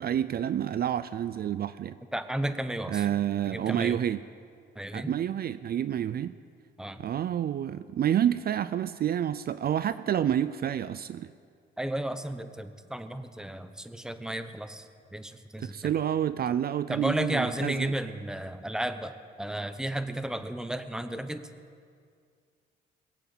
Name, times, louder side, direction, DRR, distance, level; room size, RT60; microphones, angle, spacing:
voice 1, 0.0-2.0 2.9-4.2 4.9-6.3 7.0-11.3 15.6-17.9, right 10 dB, 50° right, 14 dB, 0.5 m, -29 dB
voice 2, 2.1-3.1 3.5-4.0 4.7-5.1 6.8-7.0 11.8-15.9 16.9-21.4, right 1 dB, 5° right, 10 dB, 1.0 m, -33 dB
22.0 x 8.1 x 7.4 m, 2.2 s
cardioid pair, 90°, 20 cm